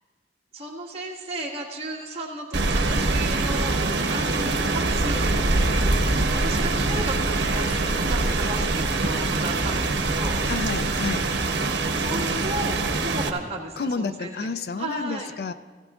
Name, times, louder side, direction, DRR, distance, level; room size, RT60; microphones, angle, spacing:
voice 1, 0.5-3.8 4.1-5.6 6.3-10.4 12.0-14.5 14.8-15.3, right 2 dB, 35° right, -4 dB, 1.8 m, -34 dB
Rain, 2.5-13.3, right 2 dB, 80° right, 1.0 m, -24 dB
voice 2, 10.5-11.3 13.8-15.5, left 4 dB, 55° left, 12 dB, 0.4 m, -30 dB
17.0 x 15.0 x 2.5 m, 1.5 s
head